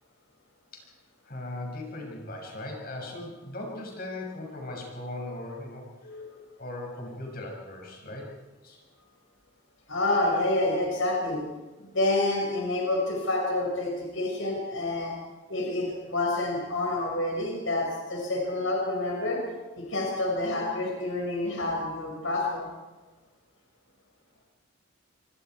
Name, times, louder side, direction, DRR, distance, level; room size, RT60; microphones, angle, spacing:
voice 1, 1.2-5.9 6.6-8.3 8.6-8.8, left 2 dB, 45° left, 0 dB, 6.4 m, -38 dB
voice 2, 9.9-11.4 11.8-15.1 15.5-19.4 19.8-22.7, left 2 dB, 70° left, -1 dB, 5.3 m, -28 dB
27.5 x 25.0 x 4.7 m, 1.2 s
head